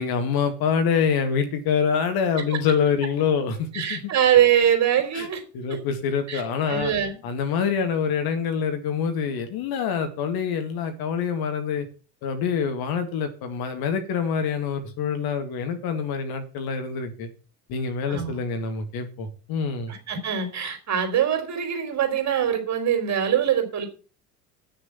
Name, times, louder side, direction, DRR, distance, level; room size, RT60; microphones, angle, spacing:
voice 1, 0.0-4.0 5.1-5.3 5.5-6.9 7.2-11.9 12.2-17.3 17.7-19.9, left 6 dB, 50° left, 7 dB, 2.0 m, -26 dB
voice 2, 3.7-5.4 5.7-5.8 6.3-6.4 6.7-7.2 18.1-18.3 19.9-23.9, right 9 dB, 35° right, 5 dB, 3.5 m, -23 dB
9.0 x 6.6 x 7.1 m, 0.36 s
figure-of-eight pair, 70°, 48 cm